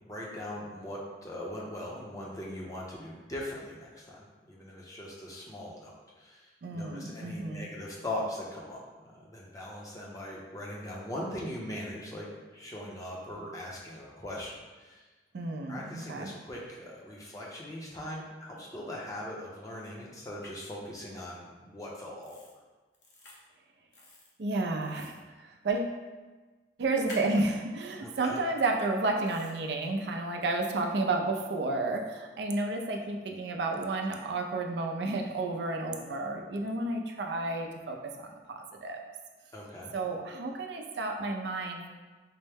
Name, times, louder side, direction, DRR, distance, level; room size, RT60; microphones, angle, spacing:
voice 1, 0.0-15.0 15.7-22.4 28.0-28.4 39.5-39.9, left 1 dB, 20° left, -4 dB, 0.6 m, -40 dB
voice 2, 6.6-7.7 15.3-16.3 24.4-25.1 25.4-26.0 26.8-39.0 39.9-41.9, right 2 dB, 70° right, 2 dB, 0.4 m, -31 dB
sound 1, 20.4-20.5 22.2-22.5 22.9-23.4 23.9-24.3 24.8-25.2 27.1-27.5 29.3-29.5, left 2 dB, 70° left, 0.8 m, -48 dB
4.3 x 2.1 x 3.3 m, 1.3 s
head